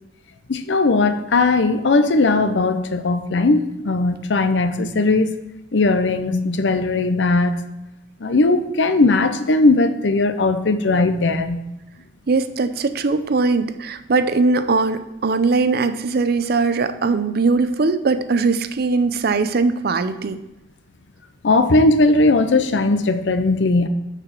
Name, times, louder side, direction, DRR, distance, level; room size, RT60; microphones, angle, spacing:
voice 1, 0.5-5.3 5.7-7.6 8.2-11.7 21.4-23.9, left 3 dB, 80° left, 10 dB, 0.7 m, -18 dB
voice 2, 12.3-20.4, right 4 dB, 60° right, 11 dB, 0.5 m, -20 dB
6.8 x 5.8 x 5.9 m, 0.93 s
head